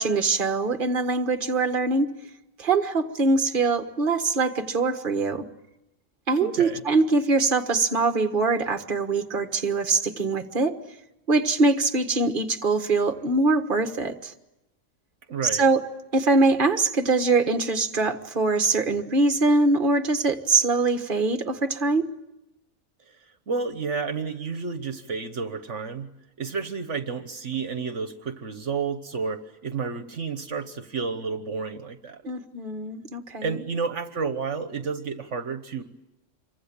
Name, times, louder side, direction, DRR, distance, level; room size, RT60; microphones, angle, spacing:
voice 1, 0.0-2.1 2.6-5.4 6.3-10.7 11.3-14.3 15.5-15.8 16.1-22.0 32.2-33.6, right 3 dB, 40° right, 7 dB, 1.7 m, -23 dB
voice 2, 6.4-6.8 15.3-15.7 23.5-26.1 26.4-32.2 33.4-35.8, right 5 dB, 65° right, 8 dB, 1.6 m, -31 dB
27.0 x 24.0 x 8.8 m, 0.93 s
omnidirectional pair, 1.3 m